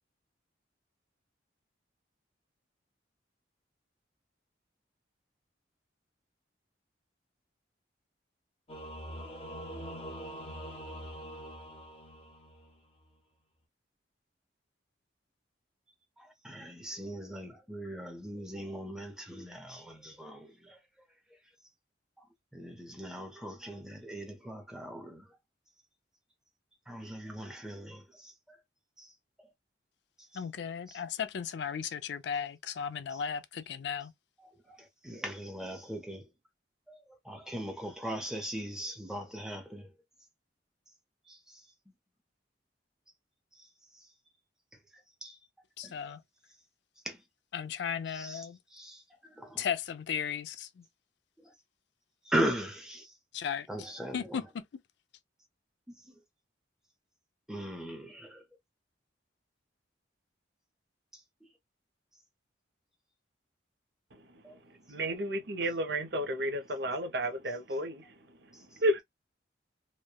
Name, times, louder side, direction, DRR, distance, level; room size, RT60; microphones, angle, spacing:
Singing / Musical instrument, 8.7-12.8, equal, 30° left, 0.9 m, -43 dB
voice 1, 16.2-20.8 22.5-25.3 26.9-28.3 29.0-29.1 30.3-30.4 30.9-31.0 34.4-36.2 36.9-39.9 41.3-41.6 45.2-45.4 45.8-45.9 47.0-47.2 48.1-48.5 48.7-49.0 49.4-49.7 52.3-53.1 53.7-54.4 57.5-58.4 64.4-64.6, right 1 dB, 5° right, 0.6 m, -39 dB
voice 2, 30.3-34.1 45.8-46.2 47.5-48.6 49.6-50.8 53.3-53.7 54.1-54.4, left 7 dB, 65° left, 0.4 m, -35 dB
voice 3, 64.9-68.0 68.8-69.0, equal, 60° right, 0.6 m, -31 dB
3.0 x 2.1 x 2.2 m
head